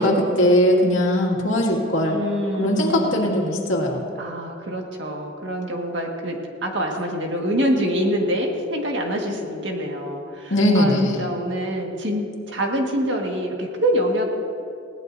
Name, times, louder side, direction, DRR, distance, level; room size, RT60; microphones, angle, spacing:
voice 1, 0.0-2.2 2.6-4.1 10.5-11.2, left 1 dB, 80° left, -1 dB, 2.3 m, -20 dB
voice 2, 2.1-3.4 4.2-14.3, equal, 60° right, 1 dB, 1.8 m, -25 dB
20.5 x 17.5 x 2.7 m, 2.5 s
head